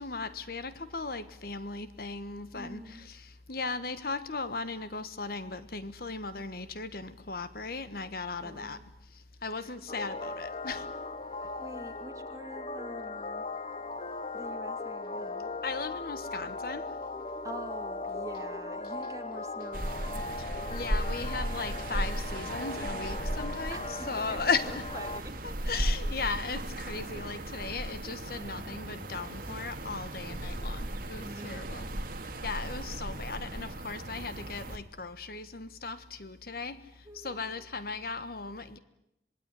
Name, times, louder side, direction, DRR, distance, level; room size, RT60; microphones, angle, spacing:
voice 1, 0.0-8.8 9.4-10.9 15.6-16.9 20.4-24.8 25.4-31.9 32.4-36.8 37.1-38.8, left 4 dB, 55° left, 13 dB, 1.3 m, -37 dB
voice 2, 2.5-3.1 8.4-8.9 9.6-9.7 11.2-13.5 14.3-15.5 17.4-20.3 23.7-25.7 28.3-28.7 31.2-32.1 32.6-32.8 37.0-37.7, right 1 dB, 20° right, 4 dB, 2.6 m, -47 dB
sound 1, 9.9-25.2, left 3 dB, 35° left, 1.1 m, -38 dB
sound 2, 19.7-34.8, right 1 dB, 50° right, 2.3 m, -36 dB
26.5 x 20.5 x 9.9 m, 0.84 s
head